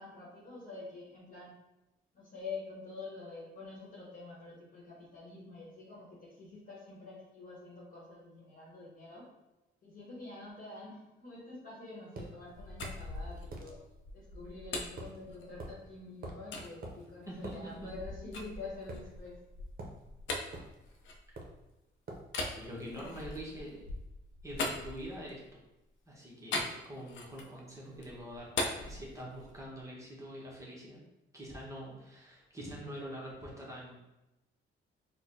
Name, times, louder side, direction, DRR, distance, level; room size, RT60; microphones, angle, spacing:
voice 1, 0.0-1.5 2.1-9.3 9.8-13.8 14.1-19.4 22.9-23.4, left 3 dB, 45° left, -5 dB, 1.1 m, -47 dB
sound 1, 12.2-12.3 12.8-13.0 13.5-13.7 15.0-15.2 15.6-15.8 16.2-16.5 16.8-17.0 17.4-17.6 18.9-19.4 19.8-20.0 20.5-20.8 21.4-21.6 22.1-22.3, right 2 dB, 45° right, 0.7 m, -44 dB
sound 2, 12.5-15.9 16.5-16.7 17.3-21.7 22.3-25.5 26.5-27.6 27.9-29.7, left 2 dB, 75° left, 0.6 m, -41 dB
voice 2, 22.6-23.8 24.4-25.6 26.1-31.0 31.3-33.9, equal, 15° right, -5 dB, 0.9 m, -45 dB
4.3 x 2.1 x 2.6 m, 0.96 s
cardioid pair, 90°, 20 cm